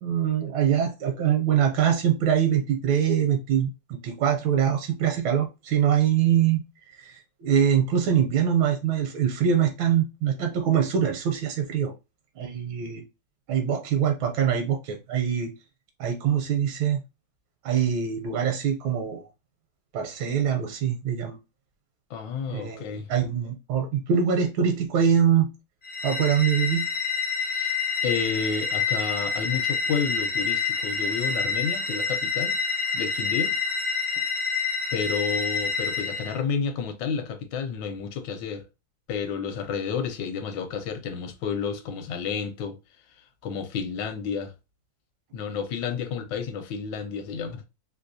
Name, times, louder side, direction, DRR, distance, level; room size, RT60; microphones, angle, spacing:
voice 1, 0.0-6.6 7.0-11.9 12.4-13.0 13.5-15.5 16.0-17.0 17.6-19.2 19.9-21.4 22.5-25.5 26.0-26.8, right 8 dB, 80° right, 1.3 m, -24 dB
voice 2, 22.1-23.1 27.4-27.8 28.0-32.6 32.9-33.5 34.9-38.6 39.1-42.8 43.1-44.5 45.3-47.7, left 6 dB, 75° left, 1.3 m, -31 dB
sound 1, 25.8-36.4, left 5 dB, 35° left, 0.6 m, -27 dB
3.3 x 2.6 x 2.6 m
omnidirectional pair, 2.1 m